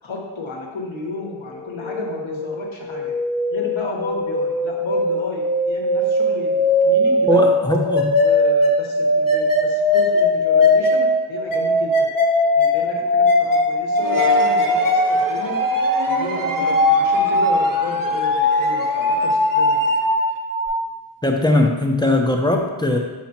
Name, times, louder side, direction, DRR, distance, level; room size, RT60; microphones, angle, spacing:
voice 1, 0.0-3.1 3.5-7.4 8.2-12.1 12.5-14.8 15.1-15.6 16.1-20.0, left 3 dB, 70° left, -1 dB, 1.3 m, -33 dB
sound 1, 1.5-20.7, left 1 dB, 40° left, 1.2 m, -19 dB
voice 2, 7.3-8.1 21.2-23.0, left 1 dB, 10° left, 2 dB, 0.6 m, -19 dB
sound 2, 14.0-20.4, right 3 dB, 45° right, 0.6 m, -30 dB
5.8 x 5.7 x 2.8 m, 1.2 s
wide cardioid pair, 90°, 49 cm